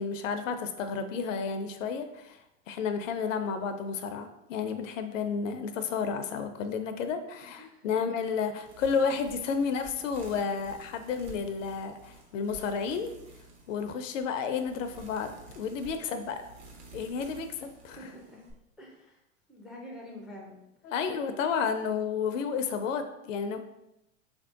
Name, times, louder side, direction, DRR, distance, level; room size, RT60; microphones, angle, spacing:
voice 1, 0.0-13.1 13.7-16.4 16.9-18.0 20.8-23.6, left 6 dB, 75° left, 8 dB, 0.5 m, -31 dB
sound 1, 8.6-18.5, right 2 dB, 45° right, 0.8 m, -51 dB
voice 2, 18.0-18.5 18.8-19.2 19.5-20.7, left 1 dB, ahead, -1 dB, 0.3 m, -46 dB
3.3 x 2.6 x 2.4 m, 0.85 s
hypercardioid pair, 95°, 39 cm